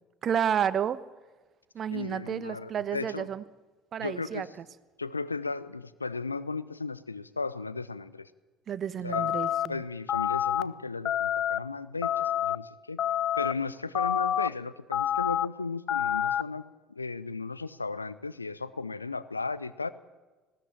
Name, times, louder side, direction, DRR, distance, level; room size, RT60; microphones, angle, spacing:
voice 1, 0.2-1.0 1.7-3.4 3.9-4.5 8.7-9.8, right 8 dB, 40° right, 16 dB, 1.1 m, -30 dB
voice 2, 1.9-3.3 4.0-4.5 5.0-8.3 9.0-13.0 13.4-16.6 16.9-19.9, left 3 dB, 85° left, 16 dB, 0.7 m, -35 dB
sound 1, 9.1-9.7 10.1-10.6 11.1-11.6 12.0-12.6 13.0-13.5 14.0-14.5 14.9-15.5 15.9-16.4, left 10 dB, 45° left, 0.6 m, -27 dB
19.5 x 17.0 x 8.8 m, 1.2 s
figure-of-eight pair, 60°, 0 cm